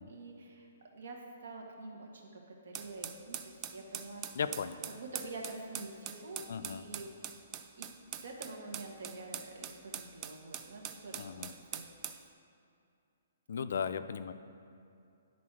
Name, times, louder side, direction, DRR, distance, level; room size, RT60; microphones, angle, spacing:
voice 1, 0.0-4.6 5.0-7.1 7.8-11.4 11.7-12.3, right 2 dB, 65° right, 1 dB, 1.5 m, -47 dB
sound 1, 2.7-12.2, right 9 dB, 20° right, 0.3 m, -43 dB
voice 2, 4.4-4.8 6.5-6.9 11.2-11.5 13.5-14.3, left 6 dB, 65° left, 12 dB, 0.4 m, -36 dB
10.5 x 4.0 x 6.1 m, 2.5 s
hypercardioid pair, 170°, 0 cm